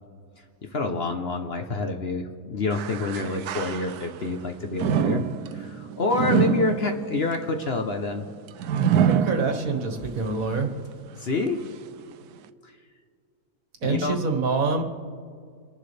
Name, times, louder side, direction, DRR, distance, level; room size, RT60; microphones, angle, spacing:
voice 1, 0.6-5.2 5.5-8.2 11.2-11.6 13.8-14.2, left 3 dB, 50° left, 5 dB, 1.0 m, -27 dB
sound 1, 2.7-4.3 4.8-10.0 10.5-10.6 11.5-11.6, right 9 dB, 85° right, 1.1 m, -26 dB
voice 2, 9.0-10.7 13.8-14.8, right 4 dB, 65° right, 4 dB, 1.8 m, -26 dB
28.0 x 11.0 x 3.4 m, 2.1 s
omnidirectional pair, 1.6 m